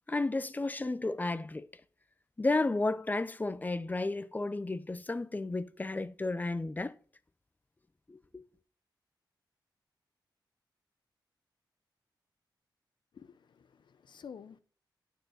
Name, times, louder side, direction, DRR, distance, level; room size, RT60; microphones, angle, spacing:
voice 1, 0.1-1.7 2.4-6.9 8.1-8.4, left 2 dB, 20° left, 0.6 m, -32 dB
voice 2, 13.1-14.6, left 7 dB, 70° left, 0.8 m, -50 dB
11.5 x 4.5 x 6.4 m
wide cardioid pair, 105°, 8 cm